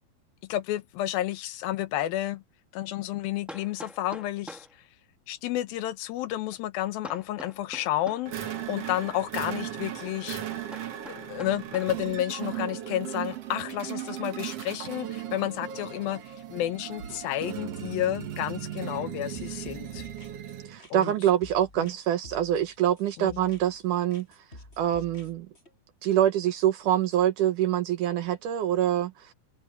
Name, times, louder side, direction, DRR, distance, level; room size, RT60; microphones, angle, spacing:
voice 1, 0.5-2.4 2.7-4.7 5.3-10.4 11.1-20.0 20.9-21.1 21.8-21.9 23.2-23.4, left 13 dB, 80° left, 2.6 m, -31 dB
Hammer, 1.9-2.0 3.5-4.8 7.0-8.3 10.7-12.0, equal, ahead, 0.4 m, -45 dB
sound 1, 8.3-20.8, right 11 dB, 55° right, 2.0 m, -37 dB
sound 2, 19.3-22.0 22.2-23.8 24.1-25.7, left 1 dB, 15° left, 7.1 m, -49 dB
voice 2, 20.7-24.3 24.8-25.5 26.0-29.3, right 11 dB, 70° right, 2.2 m, -25 dB
omnidirectional pair, 4.3 m